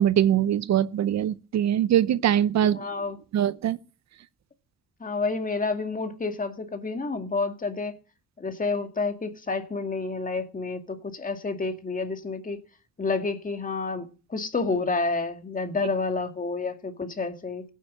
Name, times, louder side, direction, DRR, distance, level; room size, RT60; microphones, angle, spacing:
voice 1, 0.0-2.8 3.3-3.8, right 10 dB, 65° right, 0.7 m, -22 dB
voice 2, 2.6-3.2 5.0-7.9 8.4-12.6 13.0-17.6, left 3 dB, 25° left, 2.1 m, -29 dB
16.5 x 9.3 x 6.3 m
cardioid pair, 90°, 30 cm